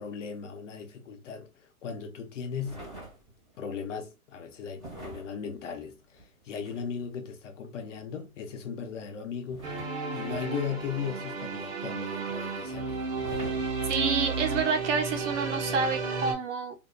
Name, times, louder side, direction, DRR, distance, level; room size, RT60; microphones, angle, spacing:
voice 1, 0.0-1.5 1.8-2.9 3.6-9.7 10.1-13.0, left 6 dB, 55° left, 0.8 m, -37 dB
sound 1, 2.6-3.6 4.7-7.1 9.5-11.4 13.1-14.3 15.3-15.4, right 2 dB, ahead, 1.1 m, -46 dB
sound 2, 9.6-16.3, right 4 dB, 25° right, 0.5 m, -33 dB
voice 2, 13.9-16.7, right 5 dB, 55° right, 0.8 m, -28 dB
2.8 x 2.4 x 2.2 m
hypercardioid pair, 155°, 44 cm